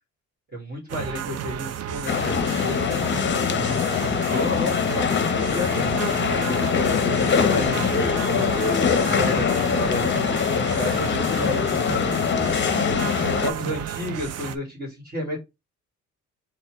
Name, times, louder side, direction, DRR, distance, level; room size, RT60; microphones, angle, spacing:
voice 1, 0.5-3.7 4.3-6.7 7.0-12.6 13.4-15.4, left 1 dB, 30° right, -3 dB, 1.7 m, -32 dB
sound 1, 0.9-14.6, right 10 dB, 55° right, 0.5 m, -33 dB
sound 2, 2.1-13.5, left 7 dB, 40° left, 0.6 m, -23 dB
4.2 x 2.2 x 4.4 m, 0.23 s
cardioid pair, 90°, 30 cm